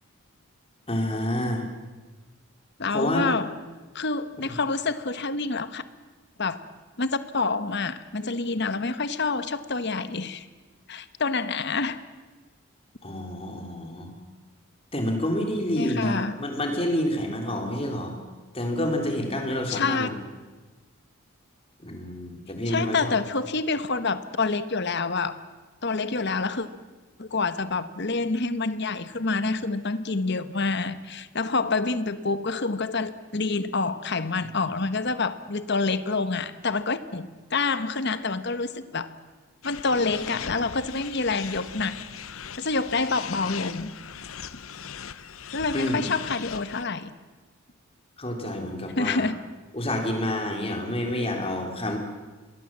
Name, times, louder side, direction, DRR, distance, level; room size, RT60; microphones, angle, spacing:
voice 1, 0.9-1.7 2.9-3.3 4.4-4.5 13.0-14.1 14.9-18.2 18.5-20.2 21.8-23.2 45.7-46.1 48.2-49.3 49.7-52.0, left 1 dB, 25° left, 3 dB, 3.3 m, -28 dB
voice 2, 2.8-3.6 3.9-5.8 6.4-6.6 7.0-10.5 10.9-12.0 15.8-16.4 19.7-20.1 22.7-25.4 25.8-26.7 27.2-39.1 39.6-42.0 42.6-43.9 45.5-47.1 49.0-49.4, left 3 dB, 55° left, 12 dB, 1.2 m, -27 dB
sound 1, 39.6-46.8, left 8 dB, 75° left, 0.9 m, -39 dB
25.5 x 21.0 x 7.5 m, 1.3 s
head